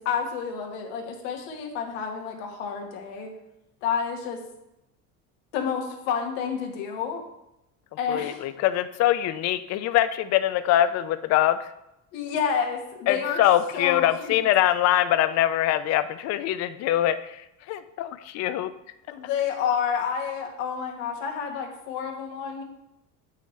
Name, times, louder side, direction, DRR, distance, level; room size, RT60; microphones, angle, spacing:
voice 1, 0.0-3.3 3.8-4.4 5.5-7.2 8.0-8.4 12.1-13.4 13.7-14.5 19.1-22.6, left 7 dB, 85° left, 2 dB, 1.3 m, -29 dB
voice 2, 8.1-11.6 13.1-17.4 17.7-18.7, left 12 dB, 45° left, 12 dB, 0.4 m, -23 dB
7.0 x 5.6 x 3.1 m, 0.88 s
cardioid pair, 125°, 39 cm